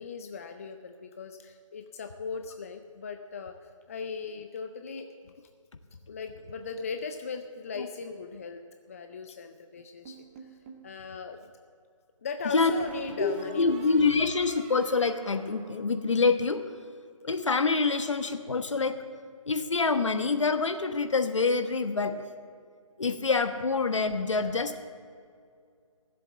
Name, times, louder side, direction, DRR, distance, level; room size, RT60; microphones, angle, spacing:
voice 1, 0.0-3.5 3.9-5.3 6.1-8.6 8.9-10.2 10.4-10.6 10.8-11.5 12.2-13.8 24.2-24.5, left 5 dB, 25° left, 6 dB, 0.5 m, -38 dB
sound 1, 10.1-10.9 12.8-16.4, right 2 dB, 20° right, 1.1 m, -47 dB
voice 2, 13.6-16.6 17.2-19.0 19.5-22.2 23.0-24.8, left 4 dB, 60° left, 8 dB, 1.2 m, -26 dB
16.5 x 7.7 x 7.6 m, 2.3 s
figure-of-eight pair, 150°, 17 cm